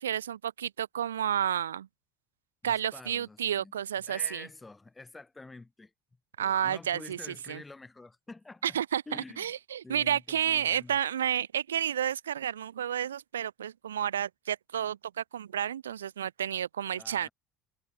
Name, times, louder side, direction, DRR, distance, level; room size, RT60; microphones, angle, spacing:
voice 1, 0.0-1.9 2.6-4.4 6.4-7.2 7.5-7.6 8.6-9.0 9.4-17.3, right 9 dB, 85° right, 0.7 m, -31 dB
voice 2, 2.6-5.9 6.4-8.8 9.1-9.5 9.8-11.0 17.0-17.3, left 3 dB, 15° left, 6.0 m, -48 dB
hypercardioid pair, 65°, 0 cm